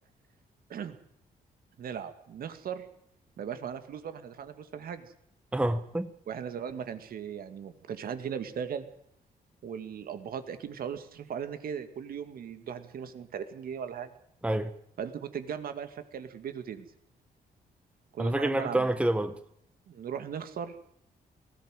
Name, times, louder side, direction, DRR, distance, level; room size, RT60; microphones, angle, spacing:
voice 1, 1.8-2.9 3.4-5.1 6.3-8.9 9.6-14.1 15.0-16.9 18.1-18.9 19.9-20.8, right 7 dB, 70° right, 2.2 m, -38 dB
voice 2, 5.5-6.1 14.4-14.7 18.2-19.4, right 1 dB, 5° right, 1.0 m, -27 dB
19.5 x 16.5 x 9.2 m
cardioid pair, 135°, 16 cm